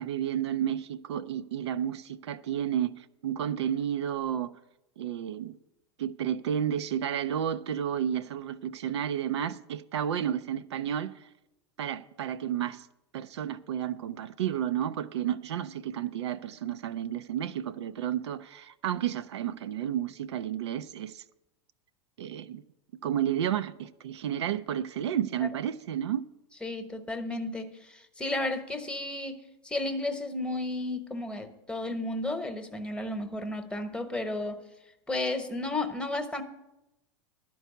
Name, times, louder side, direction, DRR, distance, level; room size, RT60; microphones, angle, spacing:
voice 1, 0.0-4.5 5.0-5.6 6.0-11.3 11.8-12.9 13.1-21.2 22.2-22.6 23.0-26.2, right 10 dB, 80° right, 0.4 m, -31 dB
voice 2, 26.6-29.4 29.6-34.6 35.1-36.4, left 2 dB, 5° left, 1.0 m, -33 dB
11.0 x 4.6 x 8.1 m
hypercardioid pair, 100°, 14 cm